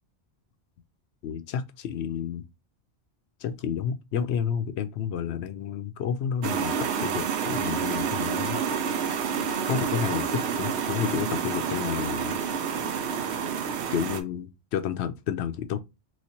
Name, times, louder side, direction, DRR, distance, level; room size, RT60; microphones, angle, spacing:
voice 1, 1.2-2.5 3.4-8.6 9.6-12.4 13.9-15.8, left 8 dB, 80° left, 0.8 m, -30 dB
sound 1, 6.4-14.2, right 6 dB, 90° right, 0.9 m, -29 dB
3.1 x 3.1 x 2.8 m
omnidirectional pair, 1.1 m